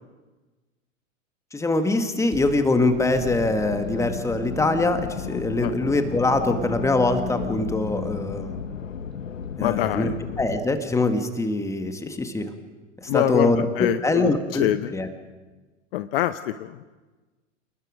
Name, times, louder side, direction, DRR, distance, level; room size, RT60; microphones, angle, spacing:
voice 1, 1.5-8.6 9.6-10.1 10.4-12.5 13.0-15.1, left 2 dB, 10° left, 7 dB, 1.8 m, -23 dB
sound 1, 2.3-9.6, left 3 dB, 25° right, 7.3 m, -38 dB
sound 2, 2.9-10.6, left 8 dB, 75° left, 1.3 m, -35 dB
voice 2, 9.6-10.1 13.1-14.9 15.9-16.8, left 14 dB, 50° left, 13 dB, 0.8 m, -25 dB
28.5 x 19.5 x 5.2 m, 1.2 s
figure-of-eight pair, 95°, 39 cm